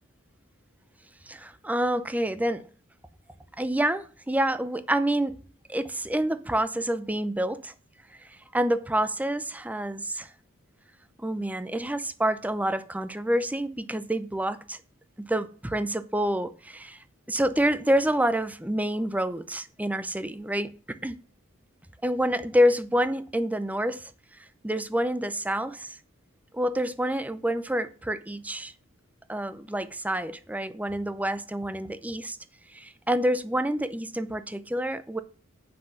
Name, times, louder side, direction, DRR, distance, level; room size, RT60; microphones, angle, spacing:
voice 1, 1.3-2.7 3.6-5.4 5.7-7.7 8.5-10.3 11.2-14.8 15.2-17.0 17.3-21.2 22.0-24.1 24.6-26.0 26.5-28.7 29.3-32.4 32.7-35.2, equal, 5° right, 0.6 m, -27 dB
7.8 x 5.9 x 5.8 m
head